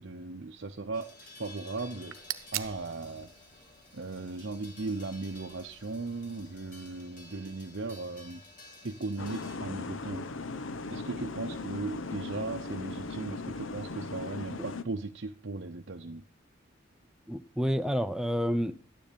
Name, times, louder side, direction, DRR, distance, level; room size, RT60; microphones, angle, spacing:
voice 1, 0.0-2.3 2.5-3.3 3.9-8.4 8.8-10.2 10.9-16.2, right 3 dB, 60° right, 0.8 m, -37 dB
sound 1, 0.9-9.6, left 2 dB, 40° left, 3.2 m, -53 dB
sound 2, 1.8-7.0, right 13 dB, 90° right, 0.9 m, -44 dB
sound 3, 9.2-14.8, left 3 dB, 75° left, 0.9 m, -38 dB
voice 2, 17.3-18.7, equal, 5° right, 0.7 m, -29 dB
13.0 x 9.9 x 5.2 m
head